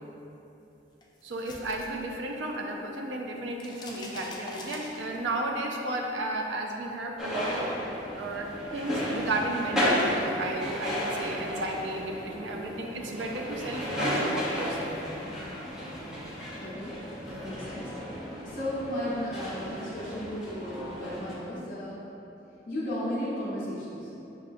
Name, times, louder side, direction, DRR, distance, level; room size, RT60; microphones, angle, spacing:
sound 1, 1.0-2.7 3.0-5.4, left 2 dB, 25° left, 0.3 m, -44 dB
voice 1, 1.2-15.0 17.3-17.4, right 1 dB, 80° right, 1 dB, 0.5 m, -33 dB
sound 2, 7.2-21.3, equal, 5° right, 0.7 m, -33 dB
voice 2, 16.6-17.0 17.3-18.0 18.4-22.0 22.7-24.1, equal, 50° left, -11 dB, 0.7 m, -34 dB
6.4 x 2.3 x 2.5 m, 3.0 s
head